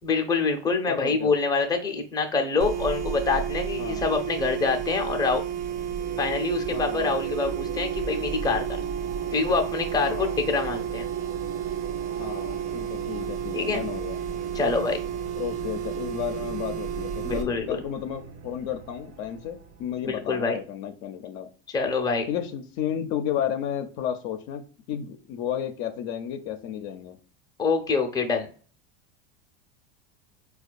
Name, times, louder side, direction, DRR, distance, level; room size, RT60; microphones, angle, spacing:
voice 1, 0.0-5.4 6.2-8.9 9.3-11.1 13.5-13.8 14.5-15.0 17.2-17.8 20.0-20.6 21.7-22.3 27.6-28.5, left 4 dB, 10° left, 3 dB, 0.6 m, -26 dB
voice 2, 0.9-1.3 3.8-4.0 6.7-7.2 10.0-10.4 12.1-14.2 15.4-21.5 22.3-27.2, left 9 dB, 55° left, 6 dB, 0.6 m, -33 dB
sound 1, 2.6-17.4, right 9 dB, 90° right, 0.6 m, -32 dB
sound 2, 5.2-20.5, right 5 dB, 45° right, 0.6 m, -40 dB
4.3 x 2.3 x 2.4 m, 0.40 s
supercardioid pair, 110°, 35 cm